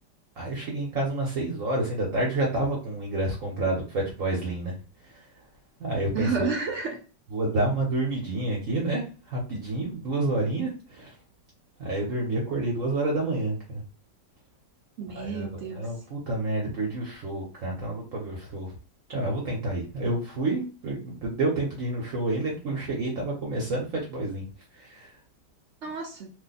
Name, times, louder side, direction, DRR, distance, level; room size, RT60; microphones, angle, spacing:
voice 1, 0.4-5.4 5.8-6.5 7.3-11.2 11.8-13.8 15.1-18.7 19.1-24.4 24.7-25.2, right 2 dB, 55° right, 1.1 m, -29 dB
voice 2, 6.1-7.0 15.0-15.9 25.8-26.3, right 5 dB, 75° right, 0.6 m, -30 dB
2.8 x 2.2 x 3.9 m
omnidirectional pair, 1.8 m